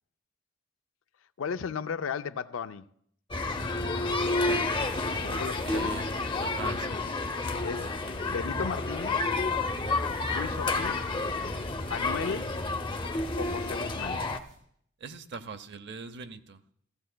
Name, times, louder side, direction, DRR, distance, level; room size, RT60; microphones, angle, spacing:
voice 1, 1.4-2.9 5.2-6.0 7.6-7.9 8.2-9.3 10.3-11.2 11.9-12.5 13.4-14.3, left 6 dB, 90° left, 0.5 m, -35 dB
sound 1, 3.3-14.4, left 3 dB, 25° left, 0.6 m, -30 dB
voice 2, 5.6-6.1 6.4-7.1 15.0-16.6, right 4 dB, 60° right, 0.7 m, -41 dB
sound 2, 9.5-14.6, right 1 dB, 85° right, 4.7 m, -49 dB
15.5 x 15.5 x 2.2 m
head